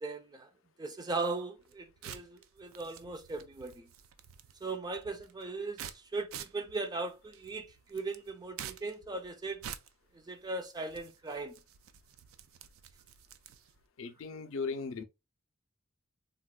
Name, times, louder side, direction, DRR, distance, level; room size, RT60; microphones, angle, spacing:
voice 1, 0.0-0.5 0.8-3.9 4.6-9.6 10.1-11.5, right 3 dB, 20° right, 0.4 m, -38 dB
sound 1, 1.6-13.8, right 9 dB, 90° right, 0.3 m, -50 dB
voice 2, 14.0-15.0, left 4 dB, 70° left, 0.4 m, -37 dB
3.8 x 2.1 x 2.2 m
head